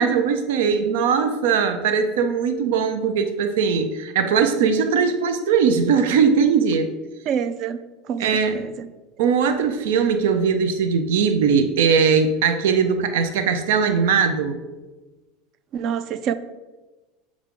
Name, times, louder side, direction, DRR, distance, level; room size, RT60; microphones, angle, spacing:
voice 1, 0.0-6.9 8.2-8.6 9.2-14.6, right 6 dB, 90° right, 8 dB, 0.6 m, -20 dB
voice 2, 7.3-7.8 8.1-8.3 8.5-8.9 15.7-16.3, right 8 dB, 35° right, 13 dB, 0.4 m, -26 dB
7.3 x 4.9 x 3.7 m, 1.2 s
supercardioid pair, 165°, 0 cm